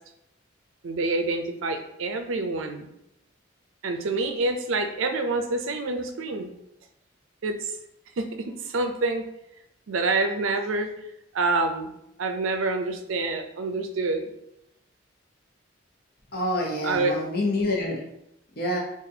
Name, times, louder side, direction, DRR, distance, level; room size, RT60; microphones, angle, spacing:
voice 1, 0.8-2.9 3.8-6.5 7.4-7.7 8.2-9.2 9.9-10.9 11.3-11.9 12.2-14.3 16.8-17.2, right 3 dB, 85° right, 6 dB, 0.4 m, -27 dB
voice 2, 16.3-18.0 18.6-18.8, left 1 dB, 50° left, -1 dB, 0.8 m, -27 dB
4.0 x 2.4 x 2.7 m, 0.83 s
head